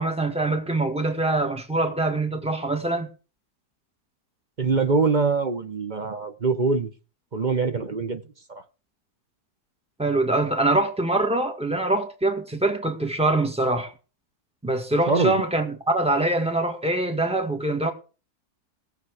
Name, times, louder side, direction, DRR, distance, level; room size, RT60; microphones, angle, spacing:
voice 1, 0.0-3.1 10.0-13.9 14.6-17.9, right 2 dB, 5° right, 1.7 m, -24 dB
voice 2, 4.6-6.9 7.3-8.2 8.5-8.6 15.1-15.4, right 4 dB, 35° right, 0.9 m, -23 dB
18.5 x 7.1 x 4.8 m
omnidirectional pair, 1.7 m